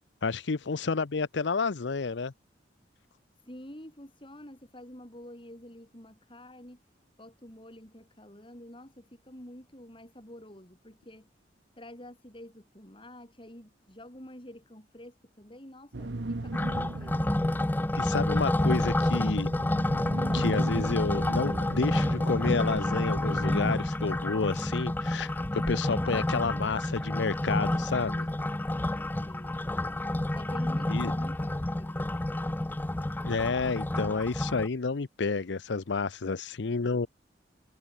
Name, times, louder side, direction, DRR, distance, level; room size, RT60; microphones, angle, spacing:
voice 1, 0.2-2.3 17.9-19.5 20.3-28.3 30.9-31.1 33.2-37.1, left 4 dB, 80° left, 0.7 m, -30 dB
voice 2, 3.4-6.8 7.2-11.3 11.8-17.3 28.6-30.0 30.3-32.2, left 1 dB, 30° left, 7.8 m, -48 dB
sound 1, 15.9-23.7, right 2 dB, 70° right, 1.0 m, -39 dB
sound 2, 16.5-34.7, left 1 dB, 10° left, 0.4 m, -29 dB
head